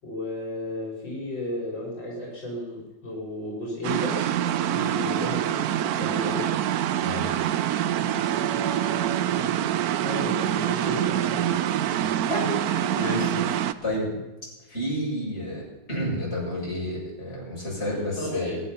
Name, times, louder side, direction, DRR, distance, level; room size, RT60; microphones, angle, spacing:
voice 1, 0.0-4.3 4.7-5.6 5.9-6.5 8.1-9.7 10.0-11.8 12.3-12.4 14.1-14.2 17.9-18.6, left 1 dB, 65° left, -4 dB, 4.9 m, -34 dB
sound 1, 3.8-13.7, right 11 dB, 70° right, 0.9 m, -25 dB
voice 2, 12.3-14.1 14.7-15.6 15.9-18.6, equal, 30° left, -4 dB, 8.1 m, -30 dB
23.0 x 11.0 x 5.7 m, 1.1 s
omnidirectional pair, 2.2 m